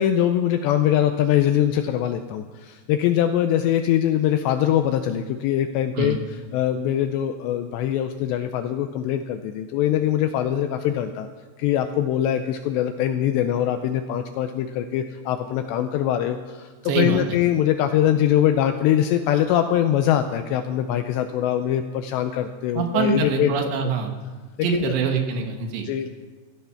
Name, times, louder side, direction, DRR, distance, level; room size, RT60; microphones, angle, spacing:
voice 1, 0.0-11.3 11.6-23.5 24.6-25.0 25.8-26.1, left 11 dB, 80° left, 7 dB, 2.6 m, -22 dB
voice 2, 16.9-17.2 22.8-24.1 24.6-25.9, right 5 dB, 70° right, 4 dB, 3.4 m, -24 dB
16.0 x 12.0 x 5.8 m, 1.4 s
omnidirectional pair, 5.5 m